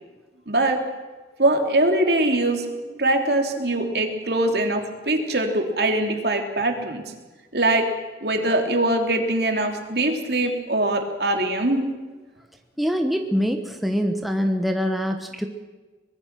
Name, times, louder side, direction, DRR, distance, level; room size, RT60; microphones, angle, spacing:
voice 1, 0.5-0.8 1.4-7.0 7.5-7.9 8.2-11.9, right 1 dB, 65° right, 4 dB, 3.0 m, -22 dB
voice 2, 12.8-15.5, equal, ahead, 4 dB, 1.3 m, -24 dB
23.5 x 21.0 x 6.0 m, 1.2 s
head